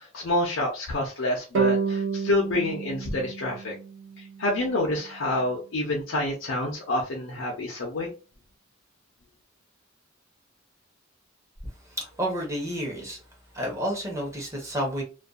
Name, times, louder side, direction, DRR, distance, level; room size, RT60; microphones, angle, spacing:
voice 1, 0.0-3.7 4.2-8.1, left 1 dB, 70° left, -2 dB, 0.6 m, -28 dB
sound 1, 1.5-4.8, right 5 dB, 70° right, 0.4 m, -30 dB
voice 2, 12.0-13.2 13.5-15.0, equal, 15° right, -1 dB, 0.9 m, -30 dB
2.5 x 2.3 x 2.3 m, 0.33 s
head